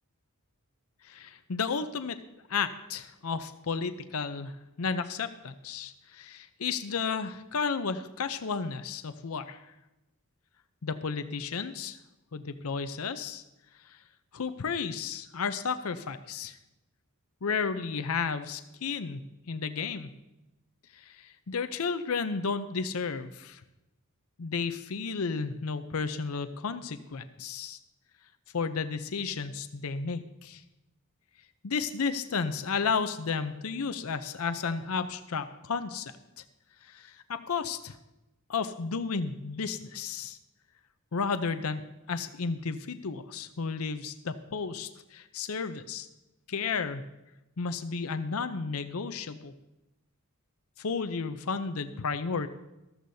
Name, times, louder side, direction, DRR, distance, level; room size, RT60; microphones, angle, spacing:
voice 1, 1.0-2.2 2.5-4.5 4.8-9.6 10.8-12.0 12.3-13.4 14.3-16.6 17.4-19.2 19.5-20.1 21.0-23.6 24.4-27.8 28.5-30.6 31.6-36.1 36.8-38.0 38.5-40.4 41.1-46.1 46.5-47.0 47.6-49.5 50.8-52.5, left 5 dB, 70° left, 10 dB, 0.6 m, -33 dB
14.0 x 13.5 x 2.7 m, 0.96 s
head